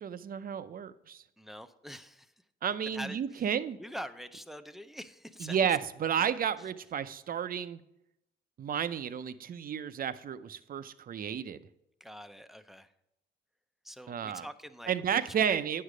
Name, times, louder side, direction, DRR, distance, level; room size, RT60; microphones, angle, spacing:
voice 1, 0.0-1.2 2.6-3.8 5.4-7.8 8.6-11.6 14.1-14.5 14.9-15.8, right 8 dB, 45° right, 12 dB, 0.6 m, -32 dB
voice 2, 1.4-2.3 2.8-3.4 3.8-5.6 6.6-6.7 12.0-12.9 13.8-15.6, equal, ahead, 9 dB, 0.6 m, -45 dB
9.4 x 6.6 x 5.0 m, 0.83 s
cardioid pair, 90°, 20 cm